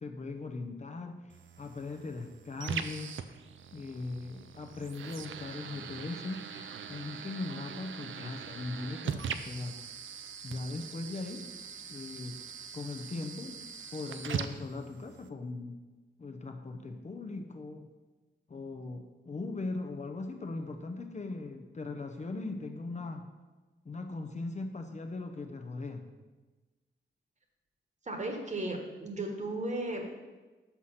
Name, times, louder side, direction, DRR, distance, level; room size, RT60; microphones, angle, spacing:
voice 1, 0.0-3.2 3.7-6.6 6.9-9.8 10.4-11.5 11.9-12.5 12.7-13.6 13.9-15.8 16.2-17.9 18.5-23.3 23.8-26.1, left 3 dB, 35° left, 4 dB, 0.6 m, -39 dB
sound 1, 1.3-15.3, right 7 dB, 75° right, 0.5 m, -42 dB
voice 2, 28.1-30.1, right 2 dB, 35° right, 3 dB, 1.3 m, -35 dB
6.3 x 5.7 x 5.8 m, 1.2 s
wide cardioid pair, 110°, 20 cm